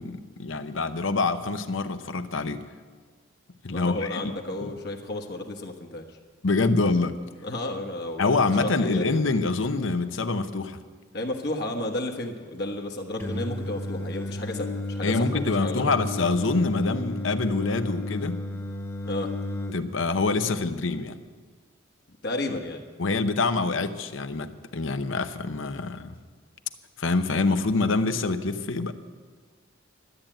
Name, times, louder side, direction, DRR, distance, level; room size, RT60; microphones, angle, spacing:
voice 1, 0.0-2.6 3.6-4.3 4.6-4.7 6.4-7.2 8.2-10.8 15.0-18.4 19.7-21.2 23.0-26.1 27.0-28.9, left 3 dB, 75° left, 9 dB, 0.8 m, -26 dB
voice 2, 3.7-6.2 7.4-9.2 11.1-15.9 19.1-19.3 22.2-22.8, left 2 dB, 55° left, 3 dB, 1.2 m, -32 dB
Singing, 13.2-19.7, left 2 dB, 15° left, 1.2 m, -33 dB
13.0 x 8.8 x 9.0 m, 1.5 s
head